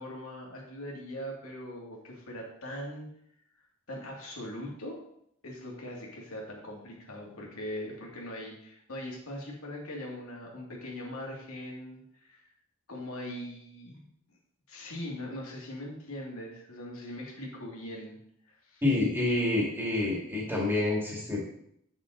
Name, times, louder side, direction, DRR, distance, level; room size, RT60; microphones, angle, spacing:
voice 1, 0.0-3.1 3.9-5.0 5.4-12.5 12.9-14.1 14.7-18.2 18.5-18.8, left 1 dB, 85° left, -2 dB, 2.4 m, -41 dB
voice 2, 18.8-21.4, left 2 dB, 10° right, -3 dB, 2.2 m, -27 dB
9.0 x 6.4 x 3.9 m, 0.72 s
head